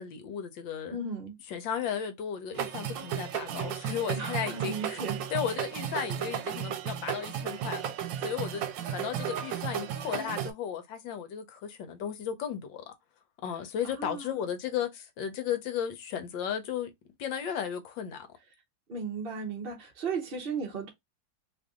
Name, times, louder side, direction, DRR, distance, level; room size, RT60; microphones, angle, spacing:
voice 1, 0.0-1.0 1.5-5.0 5.3-7.9 8.2-8.7 8.9-12.9 13.4-16.9 17.2-18.2, left 8 dB, 75° left, 1.5 m, -35 dB
voice 2, 0.9-1.3 4.2-5.2 13.8-14.5 18.9-20.9, right 4 dB, 45° right, 0.7 m, -36 dB
sound 1, 2.6-10.5, right 9 dB, 80° right, 1.3 m, -34 dB
3.3 x 2.6 x 3.6 m
omnidirectional pair, 2.1 m